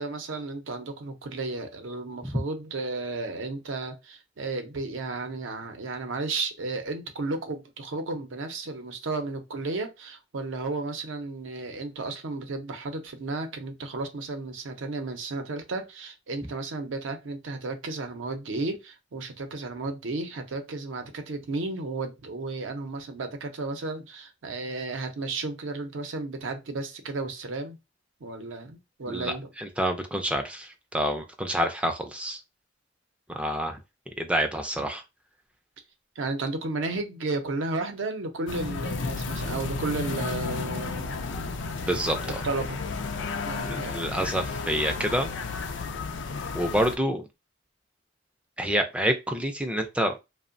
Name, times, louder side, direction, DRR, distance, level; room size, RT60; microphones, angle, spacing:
voice 1, 0.0-27.8 28.2-29.5 36.2-41.1 42.4-42.8 43.4-44.2, right 3 dB, 75° right, 0.6 m, -33 dB
voice 2, 29.1-32.4 33.3-33.8 34.2-35.0 41.8-42.4 43.6-45.3 46.5-47.2 48.6-50.2, equal, 5° right, 0.3 m, -28 dB
sound 1, 38.5-47.0, left 4 dB, 65° left, 0.4 m, -33 dB
2.8 x 2.1 x 2.5 m
head